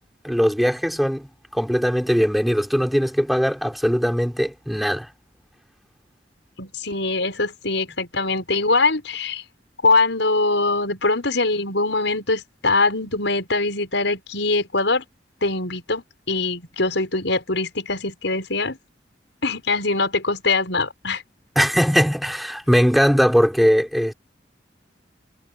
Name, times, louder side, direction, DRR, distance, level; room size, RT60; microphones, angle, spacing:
voice 1, 0.2-5.1 21.5-24.1, equal, ahead, 5.2 m, -20 dB
voice 2, 6.6-9.4 9.8-15.0 15.4-18.8 19.4-21.2, left 3 dB, 85° left, 6.1 m, -22 dB
head